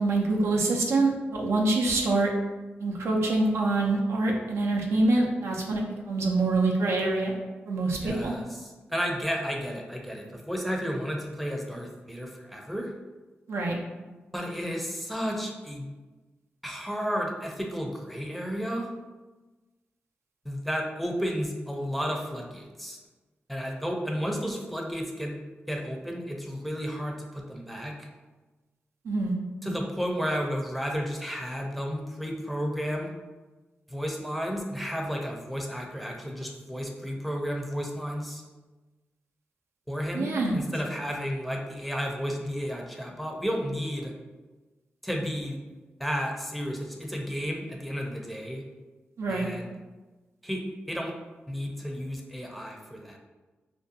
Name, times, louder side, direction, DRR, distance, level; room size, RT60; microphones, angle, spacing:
voice 1, 0.0-2.3 2.8-7.3 7.7-8.3 13.5-13.8 29.0-29.3 40.1-40.5 49.2-49.5, right 2 dB, 80° right, 0 dB, 0.4 m, -25 dB
voice 2, 8.0-12.9 14.3-15.9 16.6-18.9 20.4-23.0 23.5-25.3 25.7-28.1 29.6-33.1 33.9-38.4 39.9-44.1 45.0-45.6 46.0-48.6 49.3-49.7 50.4-51.1 51.5-53.2, equal, ahead, 0 dB, 0.5 m, -32 dB
2.5 x 2.2 x 2.6 m, 1.2 s
cardioid pair, 50°, 4 cm